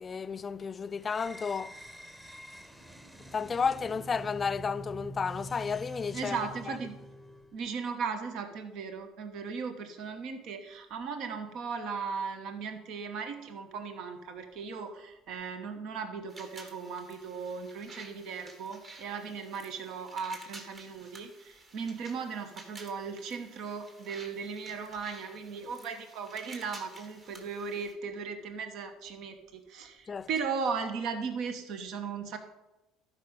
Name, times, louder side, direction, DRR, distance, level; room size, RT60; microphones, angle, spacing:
voice 1, 0.0-1.8 3.3-6.4 6.7-6.8 30.1-30.3, left 5 dB, 35° left, 0.4 m, -32 dB
sound 1, 1.0-7.6, right 1 dB, 15° right, 1.1 m, -46 dB
voice 2, 6.1-7.0 7.5-32.4, right 5 dB, 65° right, 1.1 m, -37 dB
sound 2, 16.3-27.9, right 2 dB, 40° right, 2.1 m, -52 dB
12.0 x 5.2 x 5.2 m
hypercardioid pair, 75°, 0 cm